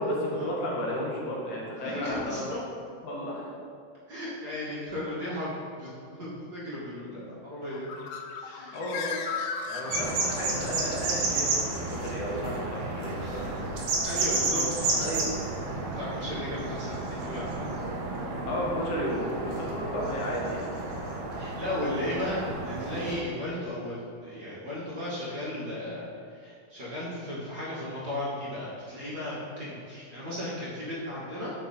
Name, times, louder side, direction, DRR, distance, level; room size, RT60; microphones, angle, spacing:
voice 1, 0.0-2.6 3.0-3.5 8.7-9.2 9.7-13.5 14.9-15.3 18.5-20.6 22.3-22.4, equal, 60° left, -4 dB, 2.8 m, -33 dB
voice 2, 1.8-2.6 4.1-7.9 8.4-8.8 9.8-10.1 13.2-13.7 14.0-15.0 16.0-17.8 21.3-31.5, left 1 dB, 30° right, -9 dB, 2.4 m, -35 dB
Bird, 7.6-10.7, left 6 dB, 80° left, 2.0 m, -36 dB
sound 1, 9.9-23.2, right 2 dB, 85° right, 3.5 m, -31 dB
11.0 x 6.2 x 4.5 m, 2.4 s
omnidirectional pair, 4.3 m